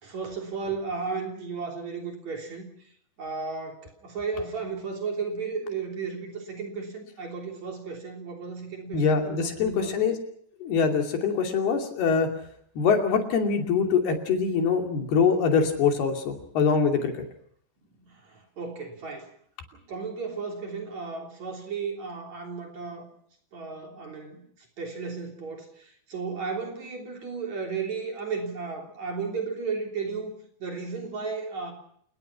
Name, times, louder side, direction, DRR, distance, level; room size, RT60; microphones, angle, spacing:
voice 1, 0.0-2.6 3.2-10.1 18.0-19.3 19.9-23.1 23.5-24.4 24.8-30.3 30.6-31.7, right 5 dB, 45° right, 2 dB, 4.4 m, -34 dB
voice 2, 8.9-10.2 10.6-12.3 12.8-17.3, left 5 dB, 65° left, 3 dB, 4.6 m, -24 dB
29.0 x 19.5 x 5.9 m, 0.65 s
omnidirectional pair, 4.9 m